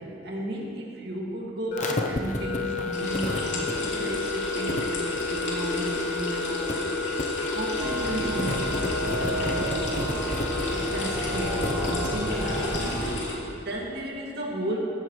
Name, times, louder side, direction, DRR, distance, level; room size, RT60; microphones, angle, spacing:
voice 1, 0.0-6.9 7.5-10.4 10.9-13.1 13.5-14.8, right 1 dB, 60° right, -2 dB, 2.2 m, -34 dB
sound 1, 1.7-13.0, left 4 dB, 40° left, 0.7 m, -31 dB
sound 2, 2.9-13.3, left 1 dB, 75° left, 2.8 m, -32 dB
sound 3, 7.8-13.1, right 1 dB, 20° right, 1.4 m, -32 dB
14.5 x 13.5 x 3.2 m, 2.6 s
head